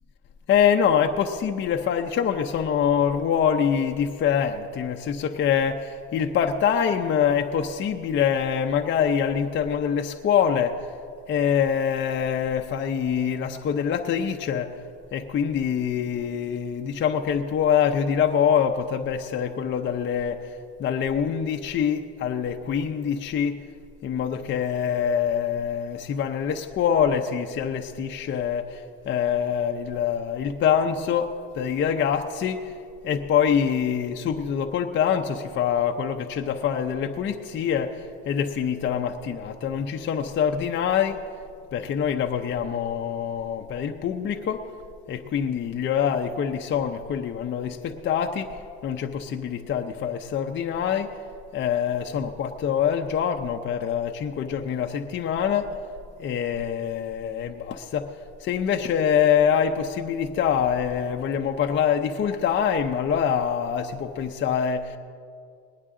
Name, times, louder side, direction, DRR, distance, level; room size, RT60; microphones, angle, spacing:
voice 1, 0.5-10.8 11.3-14.7 15.1-20.5 20.8-23.6 24.0-32.7 33.0-41.2 41.7-44.7 45.1-48.5 48.8-51.1 51.5-55.8 56.2-58.1 58.4-65.0, left 8 dB, 35° left, 4 dB, 0.6 m, -25 dB
19.5 x 10.0 x 3.7 m, 2.4 s
cardioid pair, 125°, 31 cm